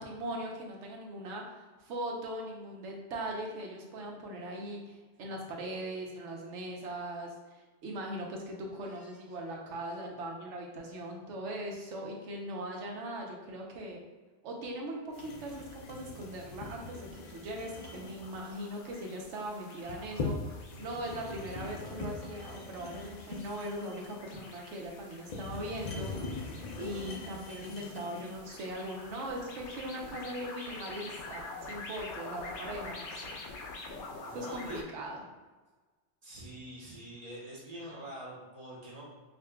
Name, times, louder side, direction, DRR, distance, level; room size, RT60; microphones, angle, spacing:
voice 1, 0.0-14.0 14.4-26.1 26.8-33.5 34.3-35.2, right 1 dB, 85° right, 0 dB, 1.0 m, -40 dB
voice 2, 8.8-9.1 34.2-34.8 36.2-39.1, right 1 dB, 35° right, -6 dB, 1.0 m, -46 dB
sound 1, 15.1-34.8, left 3 dB, 75° left, 0.9 m, -48 dB
sound 2, 15.2-28.5, left 3 dB, 55° left, 0.5 m, -42 dB
5.1 x 2.5 x 2.2 m, 1.3 s
omnidirectional pair, 1.2 m